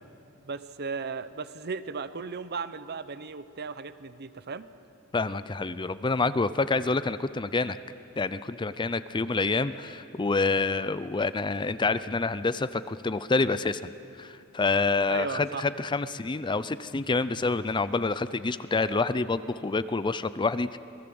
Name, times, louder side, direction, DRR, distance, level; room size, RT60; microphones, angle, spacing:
voice 1, 0.4-4.7 15.1-15.6, right 5 dB, 50° right, 13 dB, 0.8 m, -36 dB
voice 2, 5.1-7.8 8.2-20.8, left 3 dB, 20° left, 14 dB, 0.5 m, -27 dB
26.5 x 19.0 x 7.8 m, 2.6 s
head